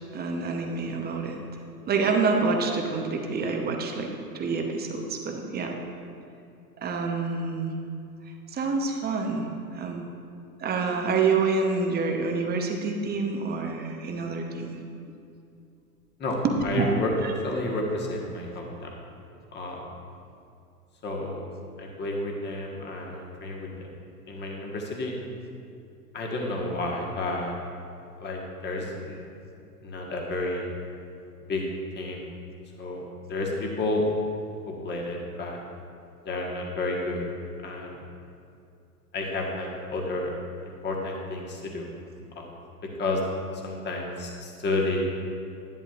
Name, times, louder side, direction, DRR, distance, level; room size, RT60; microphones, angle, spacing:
voice 1, 0.1-1.4 1.9-5.7 6.8-7.7 8.5-9.5 9.8-10.0 10.6-14.8 16.7-16.9 17.2-17.3, right 4 dB, 20° right, 2 dB, 0.8 m, -27 dB
voice 2, 16.2-18.9 19.5-20.0 21.0-21.4 21.8-23.7 24.3-25.1 26.1-27.5 28.2-29.2 29.8-30.7 31.4-31.6 31.9-32.3 32.8-33.0 33.3-34.0 34.8-35.6 36.2-37.2 37.6-38.0 39.1-40.3 40.8-41.9 42.3-42.6 43.0-43.2 43.5-45.0, left 2 dB, 20° left, -1 dB, 1.5 m, -31 dB
11.0 x 10.0 x 2.5 m, 2.5 s
hypercardioid pair, 95°, 48 cm